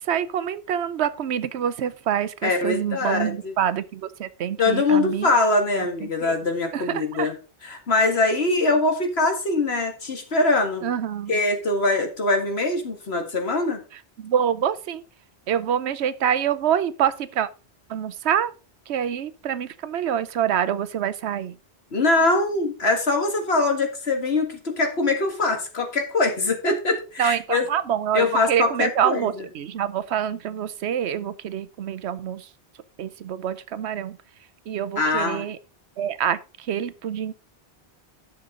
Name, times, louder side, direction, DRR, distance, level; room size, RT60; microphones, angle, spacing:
voice 1, 0.1-5.3 5.8-6.4 6.7-7.3 10.8-11.3 14.2-15.0 15.5-17.5 17.9-18.5 18.9-21.5 27.2-32.5 33.0-34.2 34.7-35.6 36.0-37.3, right 9 dB, 80° right, 1.0 m, -26 dB
voice 2, 2.4-3.5 4.6-7.3 7.6-10.9 11.3-13.8 21.9-27.7 28.1-29.3 35.0-35.4, left 2 dB, 70° left, 2.2 m, -23 dB
11.5 x 6.9 x 3.8 m
omnidirectional pair, 1.1 m